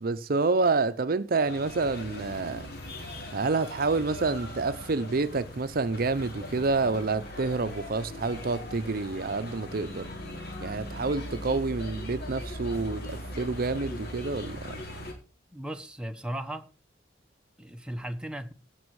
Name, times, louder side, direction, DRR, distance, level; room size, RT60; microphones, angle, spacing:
voice 1, 0.0-2.7 3.3-10.1 10.6-14.8, right 3 dB, 50° right, 0.6 m, -28 dB
sound 1, 1.4-15.1, left 1 dB, 55° left, 3.5 m, -40 dB
voice 2, 15.5-16.7 17.6-18.5, right 1 dB, 5° right, 0.9 m, -36 dB
17.0 x 6.2 x 4.7 m
head